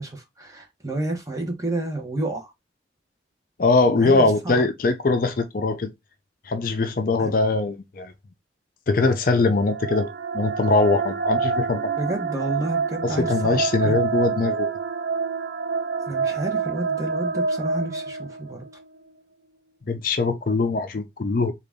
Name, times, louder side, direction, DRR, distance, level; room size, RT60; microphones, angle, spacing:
voice 1, 0.0-2.5 4.0-4.6 7.2-7.3 12.0-14.0 16.1-18.6, right 2 dB, 15° right, 0.9 m, -30 dB
voice 2, 3.6-5.9 6.5-8.1 8.9-11.9 13.0-14.7 19.9-21.5, left 3 dB, 45° left, 0.4 m, -22 dB
sound 1, 9.5-18.7, right 5 dB, 60° right, 0.4 m, -27 dB
3.8 x 2.4 x 3.5 m
head